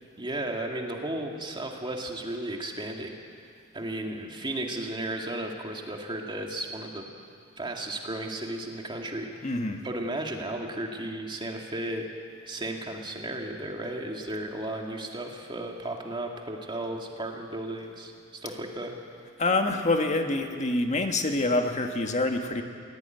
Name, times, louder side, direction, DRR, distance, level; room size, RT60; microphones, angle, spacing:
voice 1, 0.2-3.1 3.7-7.1 7.6-9.5 9.8-12.1 12.5-18.9, right 1 dB, 25° right, 1 dB, 2.3 m, -34 dB
voice 2, 9.4-9.8 19.4-22.6, left 2 dB, 35° left, 4 dB, 1.7 m, -26 dB
22.0 x 17.0 x 9.3 m, 2.3 s
head